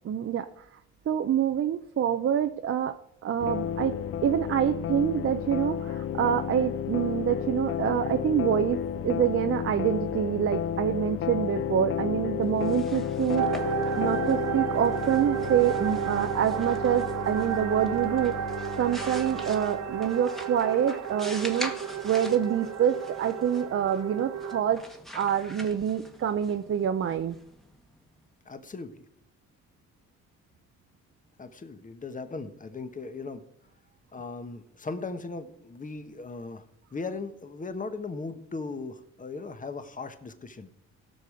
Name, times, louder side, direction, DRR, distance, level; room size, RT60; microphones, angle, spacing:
voice 1, 0.1-0.6 1.1-2.9 3.2-3.9 4.2-13.5 14.0-18.3 18.8-21.7 22.0-24.8 25.1-27.3, right 9 dB, 45° right, 8 dB, 0.7 m, -26 dB
sound 1, 3.4-20.1, left 9 dB, 45° left, 0.4 m, -32 dB
sound 2, 12.5-28.1, equal, ahead, 1.4 m, -44 dB
sound 3, 13.4-24.6, right 9 dB, 60° right, 1.2 m, -32 dB
voice 2, 28.4-29.0 31.4-33.5 34.1-36.6 36.9-40.7, left 3 dB, 25° left, 9 dB, 1.2 m, -38 dB
17.0 x 6.2 x 5.0 m, 0.72 s
cardioid pair, 90°, 30 cm